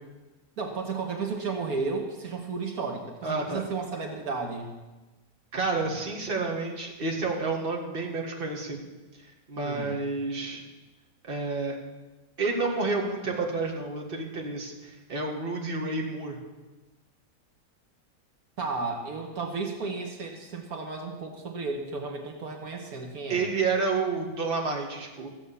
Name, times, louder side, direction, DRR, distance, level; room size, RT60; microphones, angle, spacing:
voice 1, 0.6-4.7 9.6-10.0 18.6-23.5, right 4 dB, 75° right, 2 dB, 1.9 m, -33 dB
voice 2, 3.2-3.6 5.5-8.8 9.5-10.6 11.3-11.8 12.4-16.4 23.3-25.3, right 3 dB, 40° right, 0 dB, 2.0 m, -30 dB
15.0 x 8.2 x 7.0 m, 1.2 s
omnidirectional pair, 1.6 m